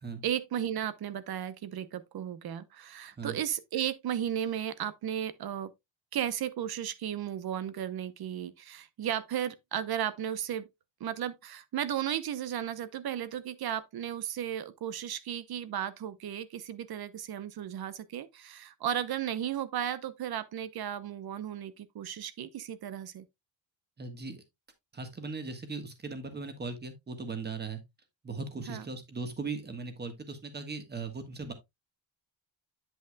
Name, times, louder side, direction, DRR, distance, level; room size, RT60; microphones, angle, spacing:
voice 1, 0.2-5.7 6.1-10.7 11.0-23.3 28.7-28.8, right 10 dB, 55° right, 0.8 m, -34 dB
voice 2, 24.0-24.4 24.9-27.8 28.2-31.5, right 4 dB, 20° right, 1.4 m, -38 dB
8.2 x 7.9 x 2.2 m
cardioid pair, 155°, 46 cm